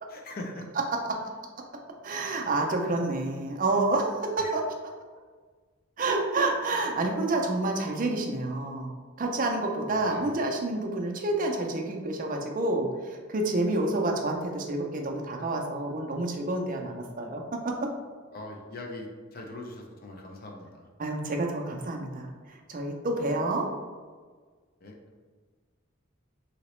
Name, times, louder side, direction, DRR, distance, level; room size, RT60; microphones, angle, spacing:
voice 1, 0.1-0.7 4.4-4.5 9.9-10.4 18.3-20.9 24.8-25.0, left 2 dB, 45° left, 1 dB, 0.5 m, -41 dB
voice 2, 2.0-4.6 6.0-8.9 9.2-17.9 21.0-23.7, right 2 dB, 40° right, 1 dB, 0.4 m, -29 dB
2.9 x 2.8 x 3.0 m, 1.5 s
head